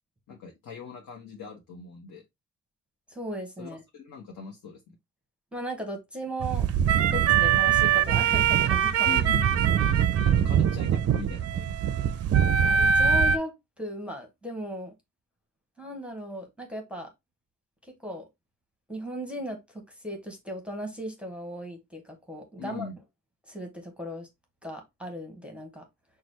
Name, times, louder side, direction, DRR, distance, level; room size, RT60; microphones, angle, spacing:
voice 1, 0.3-2.3 3.6-4.8 9.0-9.5 10.2-12.0 22.6-23.0, left 5 dB, 65° left, 1.1 m, -40 dB
voice 2, 3.1-3.8 5.5-6.8 7.1-9.2 12.6-14.9 15.8-17.1 17.9-18.3 18.9-22.9 23.5-24.3 24.6-25.8, equal, 5° right, 0.9 m, -37 dB
sound 1, 6.4-13.4, right 8 dB, 50° right, 0.4 m, -22 dB
5.8 x 2.3 x 3.2 m
wide cardioid pair, 145°, 32 cm